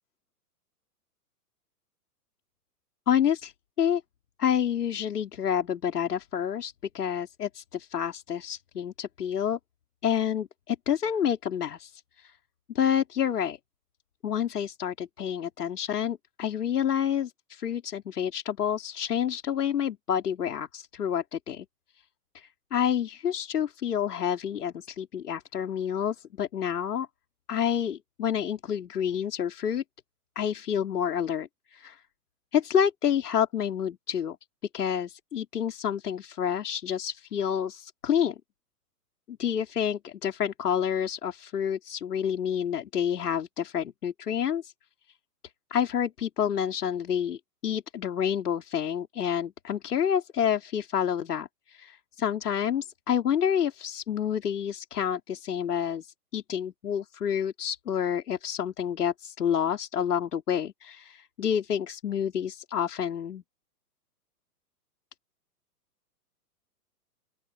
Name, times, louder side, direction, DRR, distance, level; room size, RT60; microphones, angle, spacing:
voice 1, 3.1-3.5 3.8-4.0 4.4-9.6 10.0-12.3 12.7-13.6 14.2-21.7 22.3-27.1 27.5-29.8 30.4-32.0 32.5-34.4 34.7-38.3 39.3-44.7 45.7-63.4, left 8 dB, 75° left, 3.8 m, -29 dB
open air
hypercardioid pair, 120°, 46 cm